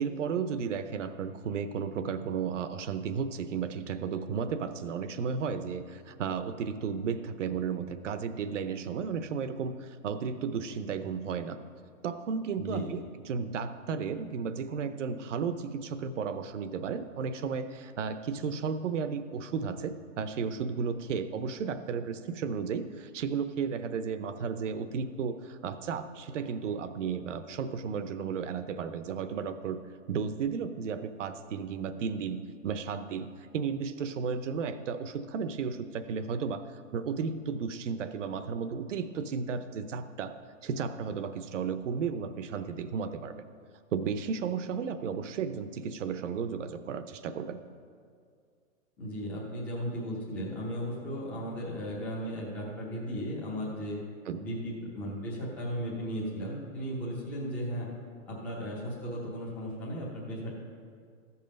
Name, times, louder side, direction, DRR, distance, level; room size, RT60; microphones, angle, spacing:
voice 1, 0.0-11.6 12.0-13.0 13.3-29.8 30.1-43.4 43.9-47.6 54.3-54.4, right 6 dB, 60° right, 11 dB, 0.8 m, -34 dB
voice 2, 12.6-12.9 49.0-54.0 54.4-57.9 58.3-60.6, equal, 5° left, -6 dB, 0.7 m, -36 dB
14.5 x 5.6 x 5.2 m, 2.2 s
hypercardioid pair, 160°, 42 cm